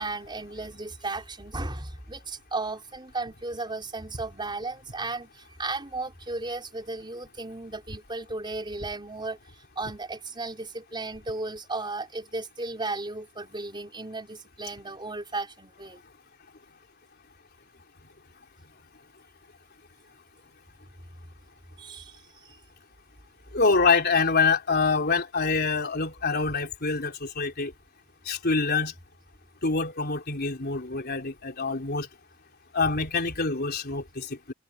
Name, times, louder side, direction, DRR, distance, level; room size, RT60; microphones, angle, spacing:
voice 1, 0.0-9.4 9.8-16.0 21.8-22.6, right 3 dB, 25° right, 4.6 m, -35 dB
voice 2, 23.5-27.7 28.3-28.9 29.6-32.1 32.7-34.5, left 4 dB, 50° left, 3.9 m, -25 dB
head